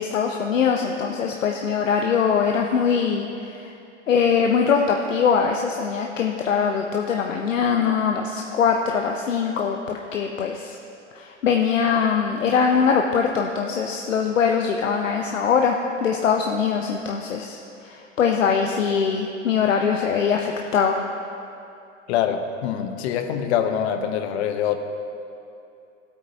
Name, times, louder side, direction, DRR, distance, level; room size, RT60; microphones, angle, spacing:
voice 1, 0.0-3.3 4.1-10.8 11.2-15.8 16.0-17.6 17.8-20.9, left 6 dB, 90° left, 2 dB, 0.7 m, -22 dB
voice 2, 22.1-24.8, left 9 dB, 60° left, 7 dB, 0.9 m, -24 dB
15.5 x 8.5 x 2.8 m, 2.7 s
hypercardioid pair, 100°, 37 cm